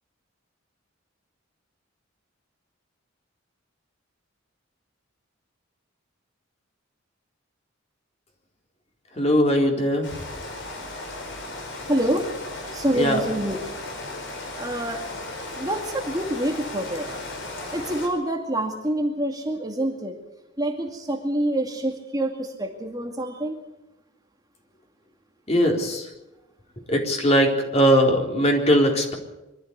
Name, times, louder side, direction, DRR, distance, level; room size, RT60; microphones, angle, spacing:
voice 1, 9.2-10.1 13.0-13.2 25.5-26.1 26.9-29.1, equal, 35° left, 1 dB, 4.0 m, -20 dB
Rain, 10.0-18.1, left 2 dB, 65° left, 5.3 m, -36 dB
voice 2, 11.9-12.3 12.7-13.6 14.6-15.0 15.5-17.1 17.7-20.1 20.6-23.6, right 1 dB, 20° right, 2 dB, 2.3 m, -26 dB
24.0 x 13.5 x 8.2 m, 0.97 s
head